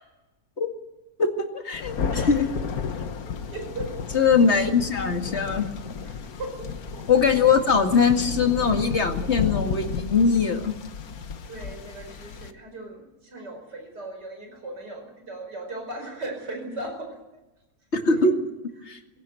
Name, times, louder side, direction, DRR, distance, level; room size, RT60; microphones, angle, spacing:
voice 1, 1.2-1.9 2.3-2.5 4.1-5.7 7.1-10.7 17.9-18.4 18.9-19.0, left 5 dB, 40° left, 4 dB, 2.4 m, -21 dB
Thunder, 1.7-12.5, left 6 dB, 60° left, 1.6 m, -33 dB
voice 2, 2.1-2.5 3.3-3.9 6.0-7.1 11.4-17.1 18.2-18.3, right 2 dB, 90° right, 4 dB, 5.8 m, -38 dB
21.5 x 16.5 x 9.2 m, 1.0 s
omnidirectional pair, 1.8 m